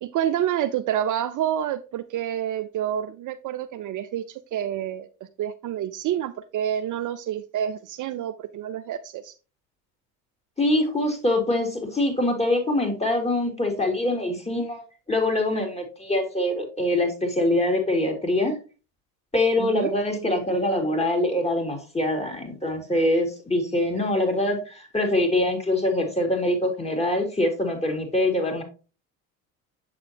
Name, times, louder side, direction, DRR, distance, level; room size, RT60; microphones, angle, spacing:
voice 1, 0.0-5.1 5.4-9.4 19.6-19.9, right 10 dB, 45° right, 10 dB, 0.6 m, -28 dB
voice 2, 10.6-18.6 19.3-28.6, left 1 dB, 15° left, 3 dB, 3.0 m, -24 dB
7.7 x 6.6 x 2.8 m, 0.33 s
hypercardioid pair, 70°, 43 cm